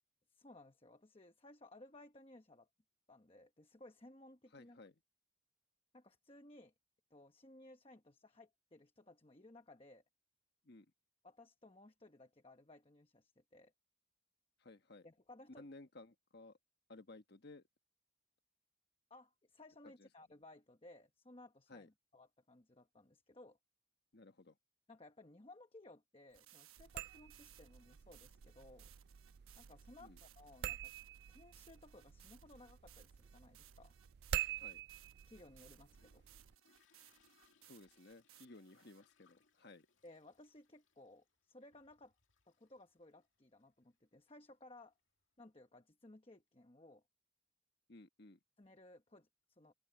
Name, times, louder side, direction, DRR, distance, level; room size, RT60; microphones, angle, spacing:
voice 1, 0.3-2.7 3.1-4.8 5.9-6.7 7.1-10.0 11.2-13.7 15.0-15.7 19.1-23.6 24.9-28.9 29.6-30.9 31.3-33.9 35.3-36.2 40.0-42.1 42.5-44.9 45.4-47.0 48.6-49.7, left 2 dB, 25° left, 1.1 m, -60 dB
voice 2, 4.5-4.9 10.6-10.9 14.6-15.1 15.5-16.6 16.9-17.6 19.8-20.1 21.7-21.9 24.1-24.6 30.0-30.2 34.5-34.8 37.6-39.9 47.9-48.4, left 2 dB, 50° left, 1.2 m, -57 dB
sound 1, 26.3-39.0, right 12 dB, 85° right, 1.1 m, -65 dB
sound 2, 26.8-36.5, right 10 dB, 50° right, 0.3 m, -47 dB
Toilet flush, 35.3-45.6, left 5 dB, 70° left, 2.4 m, -77 dB
open air
head